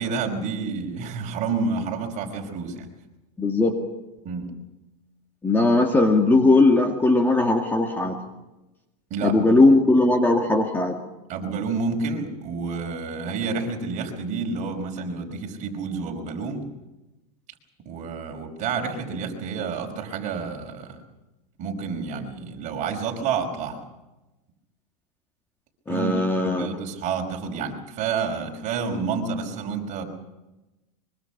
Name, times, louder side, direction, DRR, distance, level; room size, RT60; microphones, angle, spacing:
voice 1, 0.0-2.9 4.2-4.5 8.0-8.1 9.1-9.4 11.3-16.6 17.9-21.0 21.6-23.8 25.9-30.0, right 5 dB, 35° right, 2 dB, 5.2 m, -29 dB
voice 2, 3.4-3.7 5.4-8.2 9.2-11.0 25.9-26.7, left 2 dB, 10° left, 4 dB, 2.0 m, -19 dB
24.0 x 23.5 x 5.9 m, 1.0 s
supercardioid pair, 140°, 21 cm